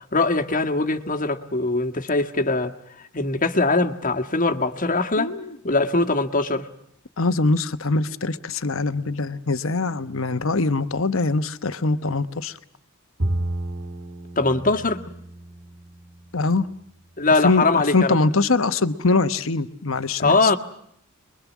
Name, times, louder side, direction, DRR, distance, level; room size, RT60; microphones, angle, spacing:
voice 1, 0.1-2.7 3.1-5.3 5.6-6.7 14.4-15.0 17.2-18.2 20.2-20.6, left 3 dB, 40° left, 1.6 m, -21 dB
voice 2, 5.2-5.6 7.2-12.6 16.3-16.7 17.4-20.6, left 3 dB, 70° left, 1.1 m, -23 dB
Bowed string instrument, 13.2-16.6, right 1 dB, 65° right, 2.3 m, -31 dB
27.5 x 22.5 x 7.3 m
head